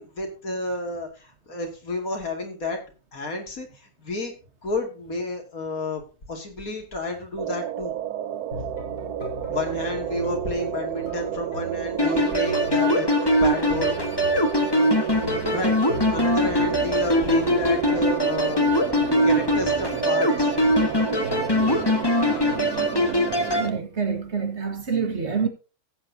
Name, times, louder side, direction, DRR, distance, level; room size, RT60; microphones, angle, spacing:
voice 1, 0.0-2.8 3.1-4.3 4.6-6.0 6.3-8.0 9.5-14.0 15.5-15.8 16.1-18.7 19.2-20.5, left 2 dB, 65° left, 2.9 m, -30 dB
sound 1, 7.4-23.8, right 11 dB, 85° right, 1.2 m, -31 dB
sound 2, 8.5-23.3, left 2 dB, 85° left, 6.1 m, -40 dB
sound 3, 12.0-23.7, left 1 dB, 15° left, 1.4 m, -22 dB
voice 2, 23.6-25.5, right 5 dB, 45° right, 1.8 m, -26 dB
16.0 x 8.5 x 2.8 m
omnidirectional pair, 1.6 m